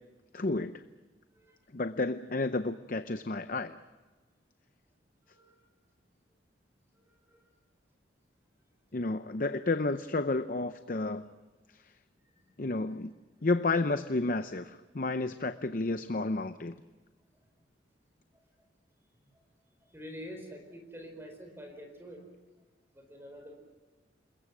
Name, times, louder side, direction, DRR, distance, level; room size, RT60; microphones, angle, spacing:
voice 1, 0.3-0.8 1.7-3.8 8.9-11.3 11.7-11.9 12.6-13.2 13.4-16.8, left 2 dB, 45° left, 10 dB, 0.7 m, -31 dB
voice 2, 5.2-5.7 6.9-7.5 12.2-12.6 17.3-17.4 18.3-18.4 19.3-19.4 19.8-22.3 22.9-23.6, equal, 15° right, 4 dB, 4.5 m, -48 dB
28.0 x 22.0 x 6.2 m, 1.3 s
head